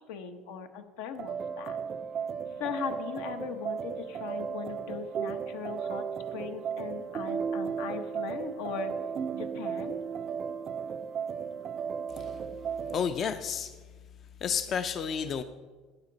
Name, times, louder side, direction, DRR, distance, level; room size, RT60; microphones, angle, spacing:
voice 1, 0.1-1.8 2.6-6.1 6.3-9.0 9.3-10.0, left 7 dB, 80° left, 7 dB, 1.0 m, -39 dB
sound 1, 1.2-13.1, right 7 dB, 35° right, 0.3 m, -35 dB
voice 2, 12.9-13.8 14.4-15.4, left 7 dB, 35° left, 10 dB, 0.4 m, -31 dB
11.5 x 9.6 x 4.0 m, 1.4 s
cardioid pair, 145°, 0 cm